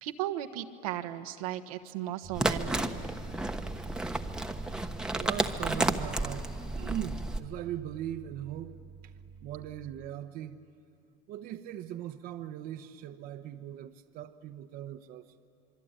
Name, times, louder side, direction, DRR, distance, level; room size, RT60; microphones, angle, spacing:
voice 1, 0.0-3.0, right 12 dB, 90° right, 1.2 m, -36 dB
sound 1, 2.2-10.1, right 6 dB, 30° right, 1.5 m, -48 dB
sound 2, 2.3-7.4, right 1 dB, 5° right, 1.1 m, -32 dB
voice 2, 5.1-8.8 9.0-9.1 9.4-10.6 11.3-15.3, right 11 dB, 60° right, 1.0 m, -40 dB
26.0 x 23.5 x 9.0 m
supercardioid pair, 115°, 17 cm